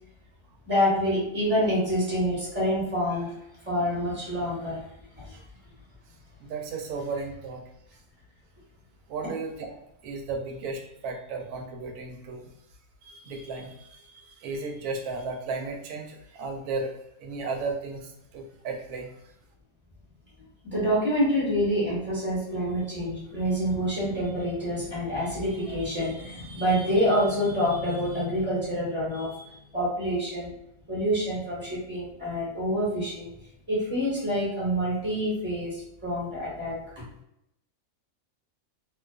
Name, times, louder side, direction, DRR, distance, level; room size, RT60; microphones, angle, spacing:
voice 1, 0.7-3.3 3.7-4.8 5.2-5.3 20.6-30.5 30.9-33.3 33.7-36.8, equal, 10° right, -8 dB, 0.9 m, -27 dB
voice 2, 6.4-7.6 9.1-12.4 13.0-16.9 17.2-19.1, right 4 dB, 85° right, 3 dB, 1.1 m, -35 dB
2.5 x 2.3 x 2.3 m, 0.81 s
omnidirectional pair, 1.6 m